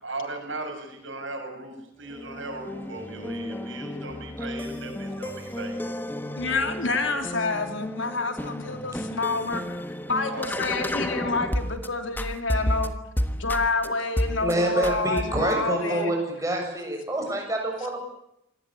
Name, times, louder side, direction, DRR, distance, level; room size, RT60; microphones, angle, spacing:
voice 1, 0.0-5.9 10.0-10.5, right 2 dB, 75° right, 4 dB, 7.0 m, -37 dB
sound 1, 2.1-11.9 12.2-13.9 14.2-14.5 14.8-15.6, left 1 dB, 10° left, 1.3 m, -32 dB
voice 2, 6.4-9.8 10.1-12.9 13.4-16.1, left 3 dB, 75° left, 6 dB, 3.5 m, -28 dB
voice 3, 14.4-18.0, right 1 dB, 15° right, 2 dB, 7.1 m, -27 dB
26.5 x 19.0 x 8.7 m, 0.81 s
head